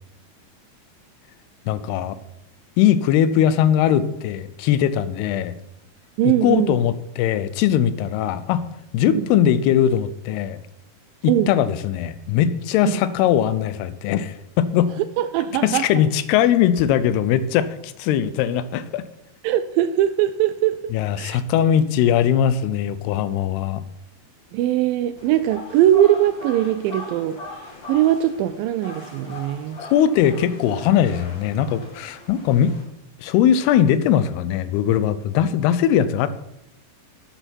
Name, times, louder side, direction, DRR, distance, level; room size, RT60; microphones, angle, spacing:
voice 1, 1.7-2.2 2.8-5.6 6.2-8.7 8.9-10.6 11.2-14.9 15.6-19.0 20.9-23.8 29.8-32.8 33.2-36.3, left 10 dB, 85° left, 14 dB, 2.7 m, -20 dB
voice 2, 6.2-6.8 9.1-9.3 11.2-11.5 12.9-13.0 15.2-16.0 19.4-21.4 24.5-27.4 27.9-29.8, right 12 dB, 85° right, 10 dB, 2.0 m, -21 dB
sound 1, 25.2-32.8, left 1 dB, 30° left, 1.8 m, -39 dB
12.0 x 10.0 x 4.5 m, 0.82 s
omnidirectional pair, 4.6 m